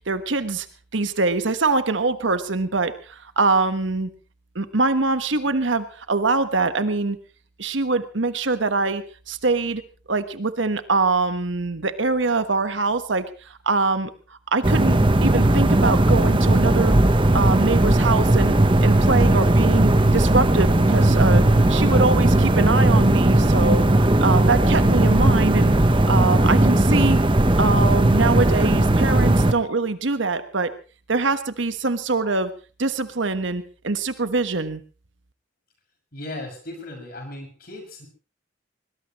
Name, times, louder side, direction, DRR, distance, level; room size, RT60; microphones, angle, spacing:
voice 1, 0.1-0.7 0.9-4.1 4.5-7.2 7.6-9.8 10.1-13.3 13.6-14.1 14.5-16.9 17.3-21.4 21.7-23.9 24.2-25.7 26.1-27.2 27.6-30.7 31.1-32.5 32.8-34.8, right 3 dB, 75° right, 10 dB, 1.3 m, -23 dB
sound 1, 14.6-29.5, right 1 dB, 25° right, 1.0 m, -17 dB
voice 2, 36.1-38.1, left 1 dB, 50° left, 2 dB, 6.6 m, -36 dB
21.5 x 20.5 x 3.1 m, 0.36 s
head